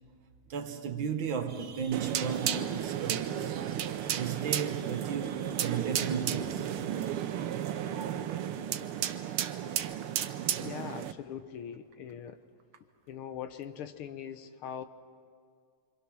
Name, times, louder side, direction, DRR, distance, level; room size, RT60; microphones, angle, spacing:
voice 1, 0.5-3.5 4.1-6.7, right 7 dB, 65° right, 1.9 m, -34 dB
sound 1, 1.5-9.2, right 4 dB, 45° right, 1.9 m, -56 dB
sound 2, 1.9-11.1, right 10 dB, 80° right, 1.7 m, -33 dB
voice 2, 10.6-12.4 13.1-14.8, left 9 dB, 80° left, 1.8 m, -41 dB
26.5 x 25.5 x 6.2 m
omnidirectional pair, 2.4 m